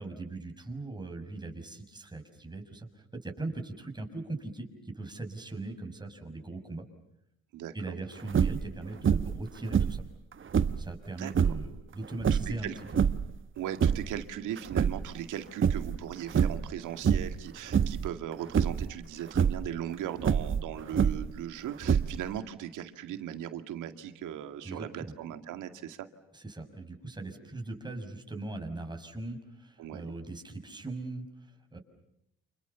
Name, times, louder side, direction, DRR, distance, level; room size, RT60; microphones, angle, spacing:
voice 1, 0.0-6.8 7.7-10.0 10.8-13.0 24.6-25.1 26.3-31.8, right 2 dB, 15° right, 4 dB, 6.3 m, -40 dB
voice 2, 7.5-7.9 11.2-11.5 12.3-12.8 13.6-26.0 29.8-30.1, right 10 dB, 90° right, 8 dB, 2.3 m, -38 dB
sound 1, 8.3-8.7 9.0-9.4 9.7-10.9 11.3-11.7 12.2-13.3 13.7-14.2 14.6-15.3 15.6-16.0 16.3-16.7 17.0-17.4 17.7-18.1 18.5-18.9 19.3-19.6 20.2-21.4 21.8-22.4, right 7 dB, 40° right, 1.1 m, -26 dB
29.5 x 28.5 x 7.1 m, 0.79 s
cardioid pair, 90°, 30 cm